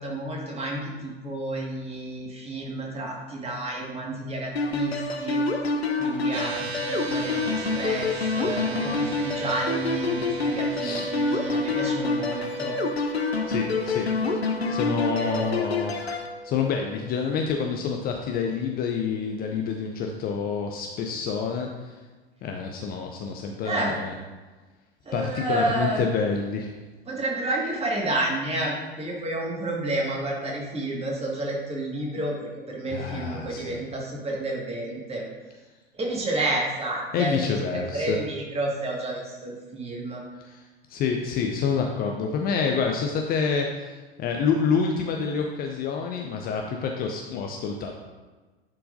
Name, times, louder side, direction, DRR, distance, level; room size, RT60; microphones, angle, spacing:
voice 1, 0.0-5.4 6.0-12.8 14.7-15.6 23.6-23.9 25.0-26.0 27.1-35.2 35.9-40.2, right 2 dB, 20° right, -2 dB, 1.8 m, -30 dB
sound 1, 4.6-16.3, left 3 dB, 85° left, 0.7 m, -27 dB
sound 2, 6.3-18.8, right 2 dB, 85° right, 0.6 m, -37 dB
voice 2, 13.5-14.1 14.7-15.9 16.4-22.0 22.4-24.1 25.1-26.7 32.9-33.8 37.1-38.2 40.4-40.6 40.9-47.9, left 6 dB, 30° left, 3 dB, 0.6 m, -27 dB
10.5 x 4.6 x 2.6 m, 1.3 s
figure-of-eight pair, 85°, 31 cm